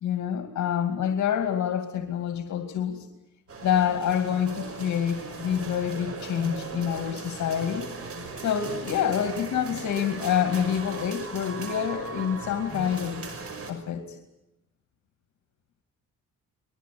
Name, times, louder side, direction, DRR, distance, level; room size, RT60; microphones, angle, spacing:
voice 1, 0.0-3.1 3.6-7.9 8.4-13.3 13.7-14.2, left 9 dB, 70° left, 7 dB, 2.4 m, -27 dB
sound 1, 3.5-13.7, right 4 dB, 50° right, 5.7 m, -38 dB
22.5 x 21.5 x 8.6 m, 0.92 s
cardioid pair, 90°, 30 cm